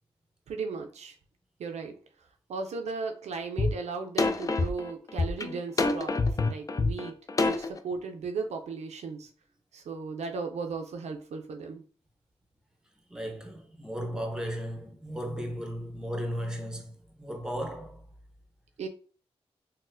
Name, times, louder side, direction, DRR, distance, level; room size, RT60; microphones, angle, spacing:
voice 1, 0.5-1.1 1.6-2.0 2.5-6.2 6.5-7.1 7.4-9.3 9.7-11.8 18.8-18.9, right 4 dB, 80° right, 0.4 m, -36 dB
sound 1, 3.6-3.7 4.2-7.8, left 3 dB, 30° left, 0.3 m, -26 dB
voice 2, 13.1-18.1, equal, 5° right, 0.7 m, -35 dB
3.9 x 2.1 x 2.5 m
cardioid pair, 65°, 11 cm